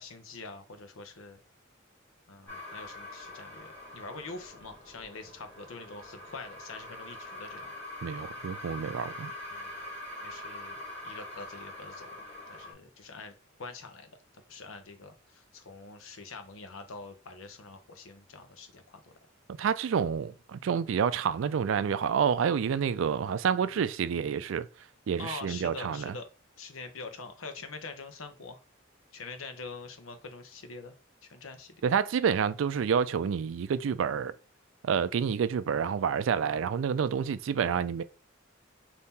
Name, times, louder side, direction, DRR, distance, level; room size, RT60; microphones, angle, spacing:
voice 1, 0.0-1.4 2.3-7.7 9.5-9.7 10.2-12.1 12.5-13.3 13.6-14.2 14.5-19.2 25.2-26.3 26.6-28.6 29.1-31.0 31.2-31.8, left 3 dB, 90° left, 0.8 m, -45 dB
sound 1, 2.5-12.7, left 1 dB, 10° left, 2.1 m, -44 dB
voice 2, 8.0-9.3 19.6-24.7 25.1-26.1 31.8-34.3 34.8-38.0, right 7 dB, 70° right, 0.3 m, -28 dB
4.1 x 2.8 x 3.6 m
head